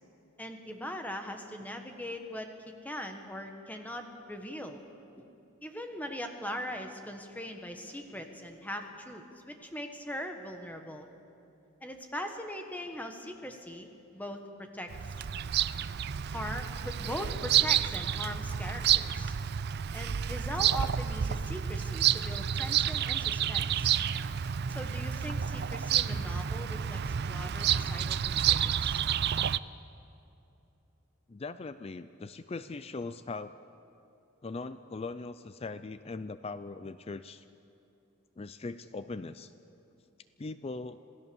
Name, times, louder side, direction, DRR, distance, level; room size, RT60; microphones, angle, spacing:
voice 1, 0.4-2.5 2.8-4.8 5.2-5.3 5.6-11.1 11.8-14.9 16.3-19.3 19.9-23.9 24.7-27.0 27.3-29.0, equal, 5° left, 5 dB, 1.5 m, -40 dB
Bird vocalization bird call bird song, 14.9-29.6, right 9 dB, 50° right, 0.4 m, -29 dB
voice 2, 31.3-33.6 34.4-37.4 38.4-39.5 40.4-41.0, left 3 dB, 25° left, 12 dB, 0.4 m, -40 dB
27.0 x 16.5 x 7.1 m, 2.9 s
head